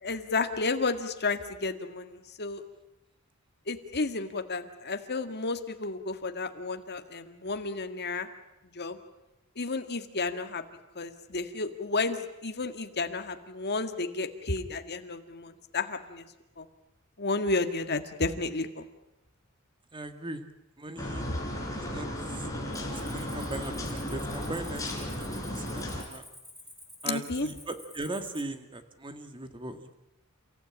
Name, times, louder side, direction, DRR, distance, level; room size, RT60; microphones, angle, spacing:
voice 1, 0.0-2.6 3.7-8.3 8.7-9.0 9.6-10.6 11.0-16.3 16.6-16.7 17.2-18.8 21.3-21.4 27.1-27.5, left 3 dB, 50° left, 7 dB, 1.9 m, -32 dB
voice 2, 19.9-20.4 20.8-21.3 21.8-22.1 22.3-22.4 23.0-26.2 27.0-29.9, right 2 dB, 25° right, 8 dB, 1.9 m, -39 dB
sound 1, 21.0-26.0, left 1 dB, 15° left, 4.8 m, -35 dB
Cricket, 22.7-28.4, left 1 dB, ahead, 3.3 m, -50 dB
29.5 x 15.5 x 8.8 m, 0.94 s
head